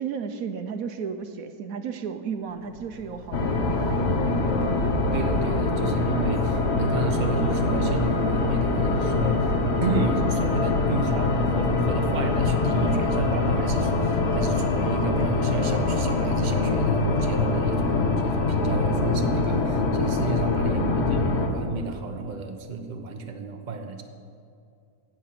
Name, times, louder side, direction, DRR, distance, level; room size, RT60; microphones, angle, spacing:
voice 1, 0.0-4.5 5.8-5.9 20.6-21.0, right 6 dB, 70° right, 8 dB, 1.2 m, -34 dB
sound 1, 2.4-20.6, left 1 dB, 30° left, 1.5 m, -44 dB
sound 2, 3.3-21.5, left 3 dB, 50° left, 1.3 m, -24 dB
voice 2, 5.1-9.6 9.8-24.0, right 4 dB, 35° right, 5 dB, 1.0 m, -32 dB
16.5 x 7.7 x 5.9 m, 2.4 s
omnidirectional pair, 1.6 m